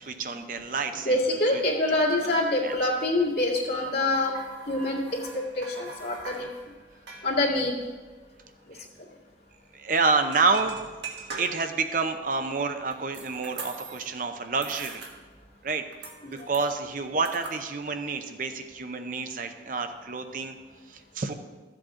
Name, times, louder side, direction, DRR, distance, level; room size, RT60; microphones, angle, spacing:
voice 1, 0.0-1.2 1.5-1.6 2.6-2.7 8.7-8.9 9.7-10.8 11.3-15.0 15.6-15.8 16.3-20.6 20.9-21.3, right 4 dB, 45° right, 7 dB, 0.6 m, -28 dB
voice 2, 1.0-4.3 4.7-6.5 7.2-7.8 16.2-16.5, left 1 dB, 65° left, -4 dB, 2.1 m, -26 dB
sound 1, 2.7-8.7 9.0-9.1 9.3-9.5 10.2-11.9 12.4-14.2 14.5-15.6 15.9-17.6, right 4 dB, 75° right, 1.5 m, -43 dB
13.5 x 7.7 x 3.7 m, 1.3 s
head